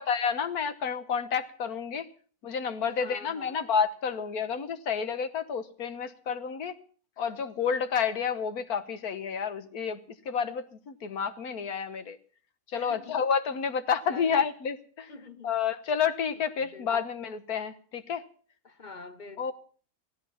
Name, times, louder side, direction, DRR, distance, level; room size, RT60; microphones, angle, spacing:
voice 1, 0.0-2.1 2.4-6.7 7.2-12.2 12.7-15.1 15.4-18.2 19.4-19.5, left 6 dB, 80° left, 1.7 m, -30 dB
voice 2, 2.8-3.6 12.7-13.2 14.1-14.5 15.1-15.5 16.6-17.0 18.6-19.5, left 4 dB, 35° left, 1.0 m, -46 dB
17.0 x 13.5 x 5.7 m
omnidirectional pair, 1.6 m